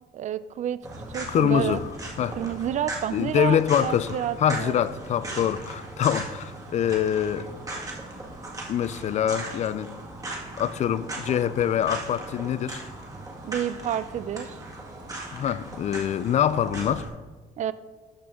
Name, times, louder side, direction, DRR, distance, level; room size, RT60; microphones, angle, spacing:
voice 1, 0.1-0.8 1.1-1.8 2.4-4.7 5.3-5.5 13.4-14.6 17.6-17.7, right 10 dB, 45° right, 0.4 m, -29 dB
sound 1, 0.8-17.1, right 2 dB, 20° right, 1.9 m, -38 dB
voice 2, 1.3-1.8 2.2-2.4 3.1-7.5 8.7-9.9 10.6-12.8 15.3-17.1, left 9 dB, 45° left, 0.4 m, -25 dB
12.0 x 6.0 x 3.6 m
cardioid pair, 110°, 17 cm